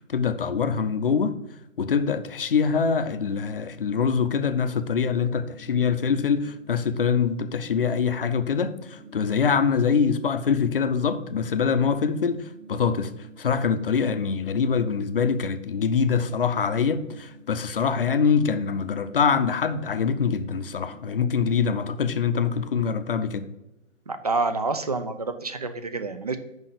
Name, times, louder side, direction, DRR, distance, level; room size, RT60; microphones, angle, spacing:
voice 1, 0.1-1.4 1.8-13.1 13.4-23.5, left 6 dB, 45° left, 0.6 m, -24 dB
sound 1, 8.6-11.9 12.4-16.0 16.2-23.8, right 2 dB, 80° right, 2.9 m, -52 dB
voice 2, 24.1-26.4, right 3 dB, 30° right, 0.4 m, -28 dB
6.3 x 5.4 x 6.6 m
figure-of-eight pair, 150°, 39 cm